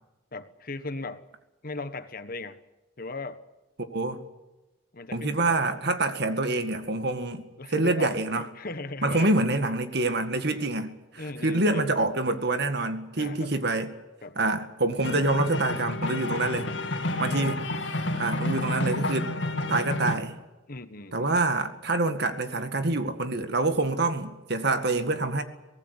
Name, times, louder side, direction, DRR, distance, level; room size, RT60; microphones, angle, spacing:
voice 1, 0.3-1.2 1.6-2.6 3.0-3.4 4.9-5.6 7.6-9.6 11.2-11.9 13.2-13.5 14.2-14.4 17.0-17.6 20.7-21.4, left 3 dB, 50° left, 10 dB, 1.4 m, -38 dB
voice 2, 3.8-4.2 5.1-7.4 7.7-8.5 9.0-13.9 14.4-16.7 17.2-17.6 18.2-19.3 19.7-20.3 21.1-25.4, right 2 dB, 55° right, 8 dB, 2.0 m, -26 dB
sound 1, 15.0-20.2, left 2 dB, 65° left, 2.6 m, -30 dB
24.0 x 18.5 x 8.3 m, 1.0 s
head